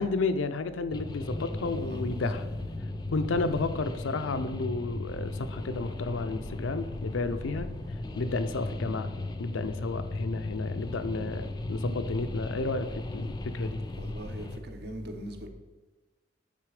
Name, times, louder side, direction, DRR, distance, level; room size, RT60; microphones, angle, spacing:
voice 1, 0.0-2.4 3.1-7.7 8.1-9.1 9.4-13.8, left 3 dB, 85° left, 0.5 m, -31 dB
sound 1, 0.9-14.6, left 2 dB, 20° left, 0.5 m, -37 dB
voice 2, 1.7-2.1 14.0-15.5, right 1 dB, 55° right, 1.0 m, -40 dB
9.2 x 4.1 x 4.9 m
head